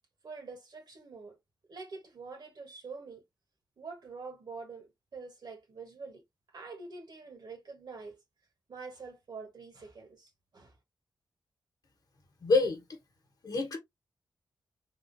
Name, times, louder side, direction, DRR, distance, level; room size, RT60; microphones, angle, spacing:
voice 1, 0.2-1.4 1.7-3.2 3.8-6.2 6.5-8.2 8.7-10.7, right 4 dB, 60° right, 1.2 m, -46 dB
voice 2, 12.4-12.8 13.4-13.8, left 3 dB, 50° left, 1.1 m, -26 dB
3.5 x 2.4 x 2.6 m
wide cardioid pair, 100°, 8 cm